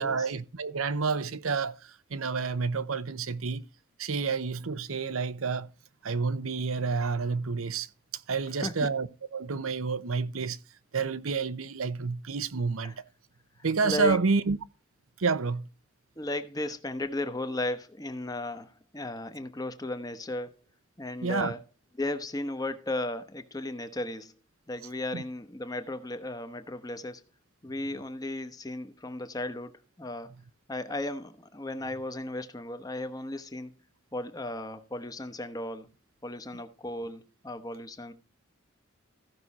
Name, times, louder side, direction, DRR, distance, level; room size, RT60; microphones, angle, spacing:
voice 1, 0.0-3.6 4.0-5.7 6.0-7.9 8.3-10.6 10.9-13.0 13.6-14.6 15.2-15.7 21.2-21.5 25.1-25.2, right 4 dB, 85° right, 0.8 m, -29 dB
voice 2, 8.6-8.9 12.8-12.9 13.8-14.2 16.2-20.6 21.0-21.6 22.0-24.3 24.7-27.2 27.6-30.3 30.7-33.7 34.1-35.9 36.2-38.1, left 1 dB, 20° left, 1.0 m, -35 dB
15.0 x 6.1 x 4.2 m
head